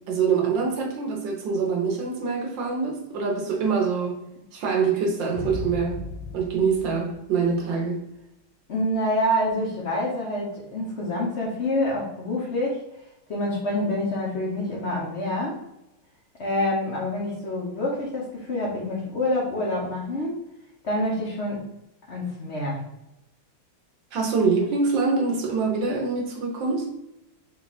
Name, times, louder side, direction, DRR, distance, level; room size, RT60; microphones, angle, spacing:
voice 1, 0.1-4.2 4.5-6.0 6.3-8.0 24.1-26.9, right 5 dB, 70° right, 1.4 m, -25 dB
sound 1, 5.3-7.8, left 3 dB, 85° left, 1.6 m, -36 dB
voice 2, 8.7-12.8 13.3-15.6 16.4-20.4 20.8-21.6 22.1-22.8, left 1 dB, 65° left, 0.6 m, -27 dB
4.7 x 2.4 x 4.0 m
omnidirectional pair, 2.3 m